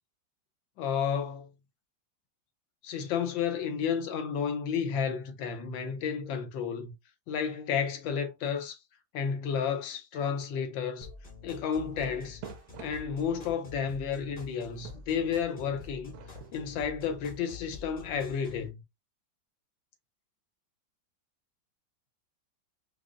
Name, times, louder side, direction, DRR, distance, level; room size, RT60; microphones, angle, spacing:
voice 1, 0.8-1.5 2.8-6.9 7.3-8.8 9.1-11.1 11.4-12.4 12.8-16.1 16.5-18.8, left 7 dB, 90° left, 1.5 m, -32 dB
sound 1, 11.0-18.7, left 5 dB, 30° left, 0.7 m, -47 dB
sound 2, 11.8-13.7 14.2-17.5, right 10 dB, 75° right, 0.9 m, -50 dB
5.0 x 2.0 x 2.5 m
omnidirectional pair, 2.0 m